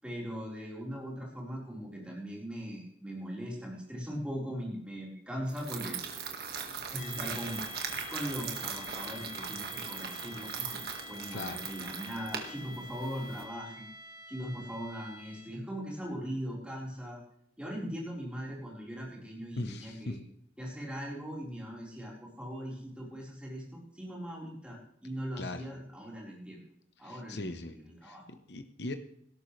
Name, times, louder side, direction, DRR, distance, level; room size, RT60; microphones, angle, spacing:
voice 1, 0.0-6.0 6.9-7.6 8.1-10.8 11.1-13.9 14.3-17.2 17.6-20.2 20.6-26.6 27.0-27.5 27.7-28.2, equal, 5° right, -4 dB, 4.4 m, -40 dB
sound 1, 5.5-13.4, right 6 dB, 55° right, 1.8 m, -40 dB
sound 2, 7.0-15.7, left 2 dB, 55° left, 4.7 m, -48 dB
voice 2, 11.3-11.6 19.6-20.3 25.4-25.7 27.0-27.8 28.0-29.0, left 2 dB, 70° left, 8 dB, 0.9 m, -39 dB
18.0 x 12.5 x 3.3 m, 0.68 s
head